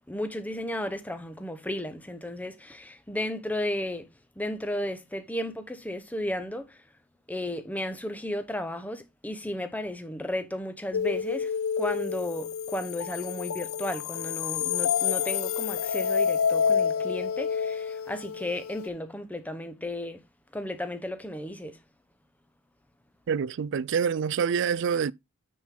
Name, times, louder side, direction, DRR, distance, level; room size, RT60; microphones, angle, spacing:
voice 1, 0.1-4.1 4.4-6.8 7.3-20.2 20.5-21.8, left 1 dB, 5° left, 0.9 m, -34 dB
sound 1, 10.9-18.9, left 7 dB, 75° left, 0.5 m, -28 dB
voice 2, 23.3-25.1, right 6 dB, 60° right, 0.3 m, -26 dB
9.5 x 4.5 x 3.7 m
head